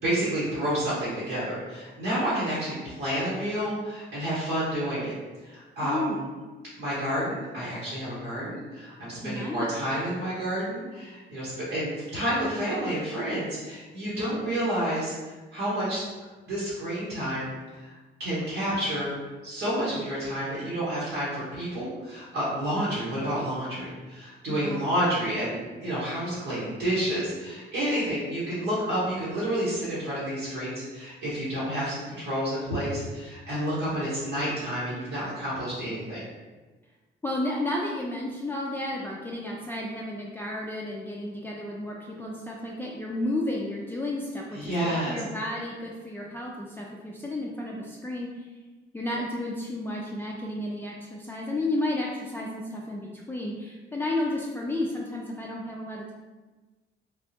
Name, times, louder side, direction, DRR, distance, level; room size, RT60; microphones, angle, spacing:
voice 1, 0.0-5.1 5.4-6.2 6.8-16.0 16.5-17.5 17.8-17.9 18.2-19.1 19.4-36.2 44.5-45.2, right 1 dB, 80° right, -10 dB, 1.3 m, -30 dB
voice 2, 5.8-6.2 9.2-9.7 24.5-24.9 37.2-48.5 48.9-56.1, left 1 dB, 10° left, -4 dB, 0.3 m, -32 dB
3.6 x 2.1 x 2.8 m, 1.3 s
cardioid pair, 90°, 20 cm